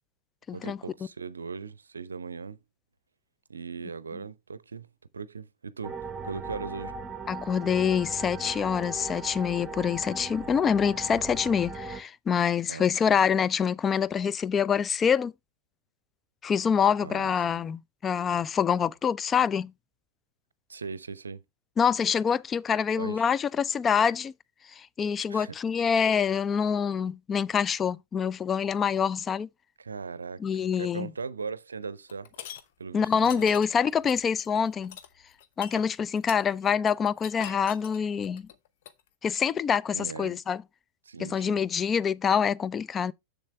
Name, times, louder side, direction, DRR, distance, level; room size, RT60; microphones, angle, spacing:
voice 1, 0.5-2.6 3.5-4.9 5.1-6.9 12.7-13.2 17.0-17.6 20.7-21.4 23.0-23.3 25.3-25.9 29.8-32.3 32.8-33.5 39.9-40.4 41.0-41.6, right 5 dB, 75° right, 0.5 m, -39 dB
sound 1, 5.8-12.0, right 3 dB, 20° right, 1.0 m, -38 dB
voice 2, 7.3-15.3 16.4-19.7 21.8-24.3 24.8-29.5 30.4-31.1 32.9-35.0 35.6-38.4 39.2-40.6 41.2-43.1, left 7 dB, 20° left, 0.3 m, -26 dB
sound 2, 32.1-32.6 33.2-39.0, left 10 dB, 55° left, 0.8 m, -43 dB
7.3 x 7.0 x 3.2 m
figure-of-eight pair, 90°, 0 cm